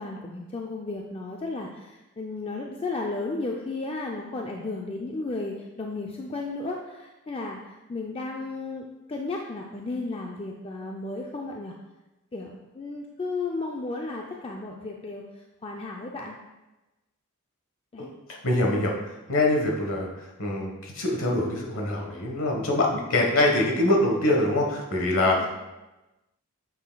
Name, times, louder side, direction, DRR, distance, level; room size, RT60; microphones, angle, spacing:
voice 1, 0.0-7.6 7.9-11.7 12.3-15.2 15.6-16.4 17.9-18.1 25.3-25.5, left 3 dB, 25° left, 0 dB, 0.4 m, -34 dB
voice 2, 18.0-25.5, left 1 dB, 60° left, 0 dB, 1.2 m, -24 dB
7.6 x 5.8 x 2.2 m, 1.0 s
head